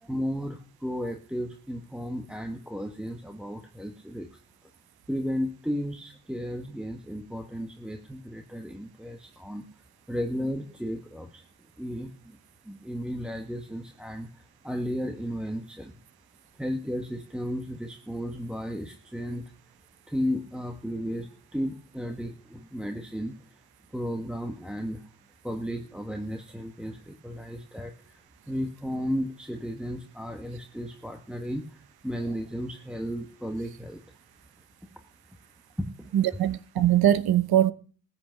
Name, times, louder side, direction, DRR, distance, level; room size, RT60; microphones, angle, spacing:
voice 1, 0.0-4.4 5.1-9.6 10.1-11.5 11.8-12.4 12.6-16.0 16.5-19.5 20.1-23.4 23.9-25.0 25.4-28.2 28.5-34.0 35.8-36.1, equal, ahead, 1.3 m, -34 dB
voice 2, 36.1-37.7, right 11 dB, 75° right, 0.9 m, -22 dB
14.5 x 8.2 x 7.5 m
cardioid pair, 65°, 38 cm